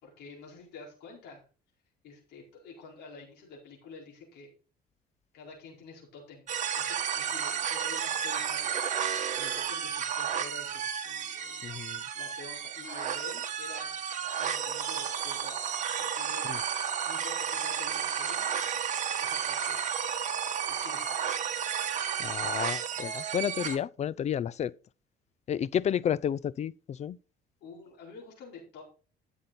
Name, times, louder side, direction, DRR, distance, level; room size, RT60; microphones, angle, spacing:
voice 1, 0.0-1.4 2.0-4.5 5.3-6.5 6.7-8.8 9.1-11.7 12.1-14.0 14.4-15.7 16.0-19.8 20.7-21.4 27.6-28.8, left 4 dB, 80° left, 4.5 m, -49 dB
sound 1, 6.5-23.8, right 8 dB, 45° right, 1.8 m, -32 dB
voice 2, 11.6-12.0 16.5-16.6 22.2-24.7 25.5-27.2, left 9 dB, 40° left, 0.5 m, -31 dB
11.5 x 7.4 x 4.2 m
cardioid pair, 110°, 17 cm